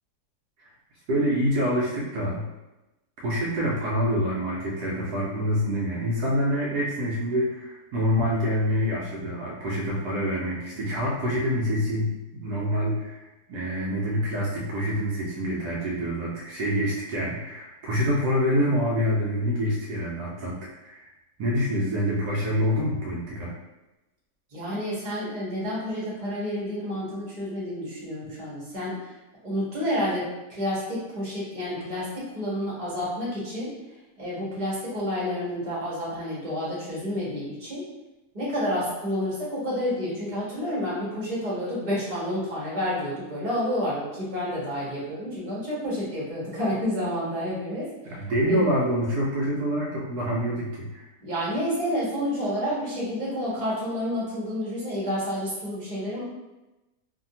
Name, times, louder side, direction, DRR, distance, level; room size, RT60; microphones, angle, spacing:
voice 1, 1.1-2.5 3.2-21.1 21.4-23.5 48.1-51.1, equal, 75° right, -5 dB, 1.1 m, -26 dB
voice 2, 24.5-29.2 29.4-33.7 34.2-37.8 38.3-48.2 48.4-48.6 51.2-56.2, equal, 30° right, -7 dB, 1.0 m, -29 dB
2.7 x 2.6 x 2.7 m, 1.0 s
omnidirectional pair, 1.8 m